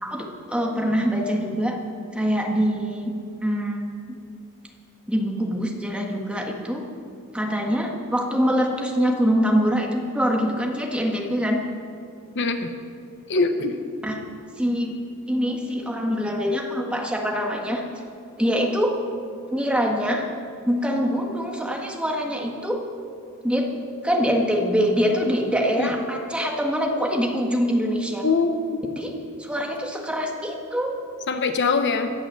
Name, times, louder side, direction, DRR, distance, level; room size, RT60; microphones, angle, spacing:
voice 1, 0.0-1.8 2.1-3.8 5.1-6.8 7.3-11.6 14.0-14.2 14.6-15.0 15.3-17.8 18.4-19.0 19.5-20.3 20.7-22.8 23.4-23.7 24.0-28.3 29.0-29.1 29.4-31.0, equal, 5° right, 0 dB, 1.7 m, -24 dB
voice 2, 12.3-12.7 13.3-13.8 25.8-25.9 28.2-28.8 31.3-32.1, left 4 dB, 55° left, 7 dB, 1.0 m, -23 dB
17.0 x 9.9 x 7.6 m, 2.5 s
head